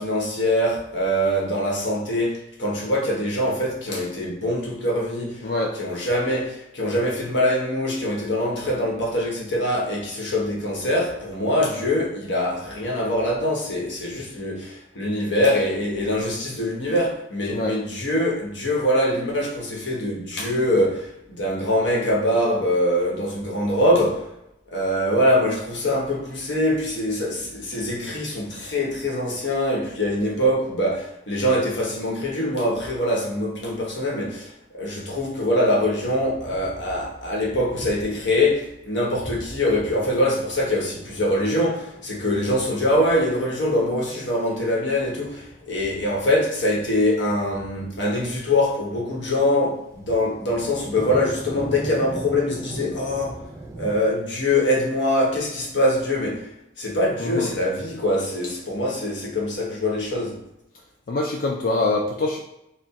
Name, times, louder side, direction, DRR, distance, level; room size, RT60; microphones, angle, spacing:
voice 1, 0.0-5.4 5.8-24.3 24.7-53.4 53.8-56.5 56.8-60.4, left 1 dB, 80° left, 1.1 m, -23 dB
voice 2, 5.4-5.7 17.5-17.8 57.2-57.5 61.1-62.4, left 2 dB, 50° left, 0.4 m, -24 dB
sound 1, 36.3-38.3 38.7-38.8 39.2-53.9, right 1 dB, 15° right, 0.6 m, -39 dB
4.2 x 2.2 x 3.6 m
head